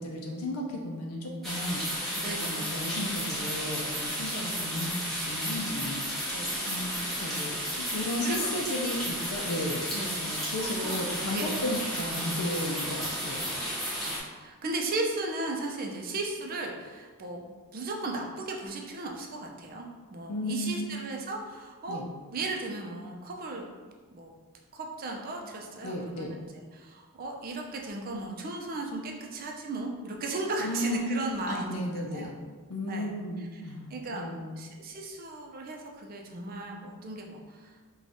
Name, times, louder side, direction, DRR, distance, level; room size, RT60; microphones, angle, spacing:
voice 1, 0.0-1.8 2.3-6.1 6.7-9.8 10.2-13.6 20.3-21.0 21.9-22.1 25.8-26.3 30.6-31.1 31.5-32.4 32.7-34.6, left 1 dB, 80° left, -1 dB, 0.5 m, -34 dB
sound 1, 1.4-14.2, equal, ahead, 0.8 m, -33 dB
voice 2, 2.2-2.7 4.2-4.3 6.3-6.5 7.2-7.3 8.2-8.5 9.9-10.5 10.8-11.0 11.3-11.6 14.0-22.0 22.3-23.6 24.1-24.3 24.7-32.3 32.9-33.1 33.4-33.6 33.9-37.8, right 2 dB, 40° right, 1 dB, 0.4 m, -36 dB
4.8 x 2.3 x 2.6 m, 1.4 s
head